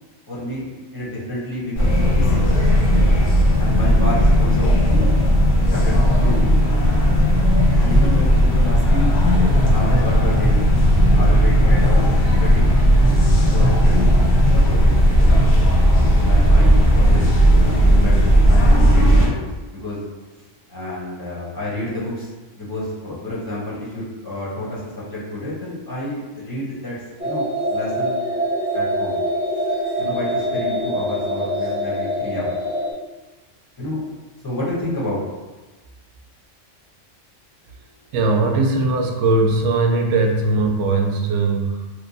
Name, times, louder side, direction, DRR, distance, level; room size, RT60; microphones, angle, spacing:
voice 1, 0.3-0.6 0.9-2.5 3.1-3.2 3.6-5.1 5.5-6.5 7.8-9.1 9.6-10.6 11.1-12.0 12.4-12.7 13.5-14.1 14.5-15.0 16.2-17.3 18.0-19.4 19.7-20.0 20.7-22.3 22.5-27.0 27.2-28.2 28.7-29.2 30.0-32.5 33.8-34.0 34.4-35.2, left 1 dB, 20° left, -8 dB, 0.9 m, -29 dB
sound 1, 1.8-19.3, equal, 55° left, 0.9 m, -15 dB
sound 2, 27.2-32.9, equal, 10° right, 0.9 m, -24 dB
voice 2, 38.1-41.9, right 3 dB, 75° right, 2 dB, 0.9 m, -19 dB
3.1 x 2.2 x 4.0 m, 1.2 s
omnidirectional pair, 1.3 m